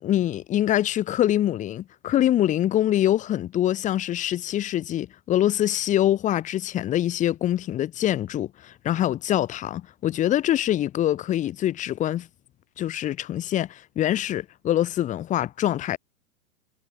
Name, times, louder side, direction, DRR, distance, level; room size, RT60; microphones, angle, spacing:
voice 1, 0.0-12.3 12.8-16.0, left 12 dB, 15° left, 0.8 m, -24 dB
hypercardioid pair, 130°, 44 cm